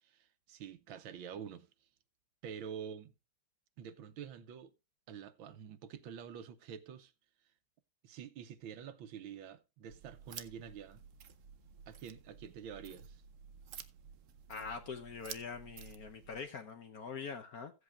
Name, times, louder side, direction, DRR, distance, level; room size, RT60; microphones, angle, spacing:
voice 1, 0.0-1.7 2.4-3.1 3.8-4.7 5.1-7.1 8.0-11.0 11.9-13.2, right 8 dB, 70° right, 1.6 m, -47 dB
sound 1, 9.9-16.4, right 8 dB, 85° right, 0.6 m, -52 dB
voice 2, 14.5-17.7, left 5 dB, 60° left, 1.0 m, -44 dB
16.5 x 8.1 x 2.4 m
omnidirectional pair, 2.4 m